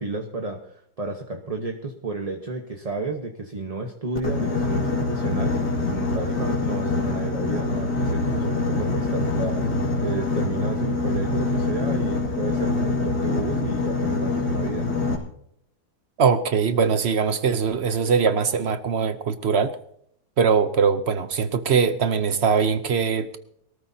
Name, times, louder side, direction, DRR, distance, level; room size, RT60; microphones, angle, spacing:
voice 1, 0.0-14.9, right 3 dB, 25° right, 3 dB, 1.0 m, -32 dB
Boat Water vehicle, 4.2-15.2, left 3 dB, 60° left, 2.8 m, -25 dB
voice 2, 16.2-19.7 20.4-23.4, right 6 dB, 55° right, 11 dB, 0.8 m, -21 dB
23.0 x 13.5 x 2.8 m, 0.69 s
omnidirectional pair, 1.9 m